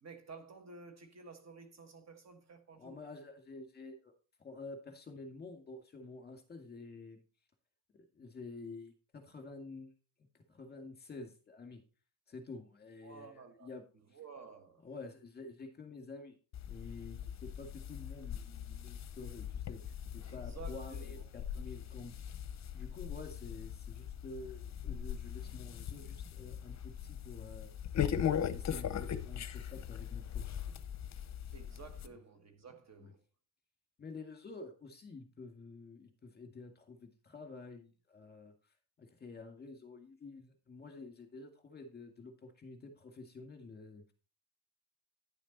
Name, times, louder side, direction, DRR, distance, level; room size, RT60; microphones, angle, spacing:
voice 1, 0.0-3.0 13.0-13.7 14.1-14.9 20.3-21.2 21.6-21.7 31.5-33.2, right 5 dB, 35° right, 1.5 m, -52 dB
voice 2, 2.7-4.1 4.4-7.2 7.9-9.9 10.3-11.8 12.3-13.8 14.1-14.2 14.8-16.4 16.7-22.3 22.7-27.7 28.3-30.6 33.0-33.1 34.0-44.0, left 3 dB, 20° left, 2.1 m, -50 dB
sound 1, 16.5-32.1, left 9 dB, 40° left, 0.8 m, -40 dB
10.0 x 7.1 x 4.2 m
cardioid pair, 140°, 44 cm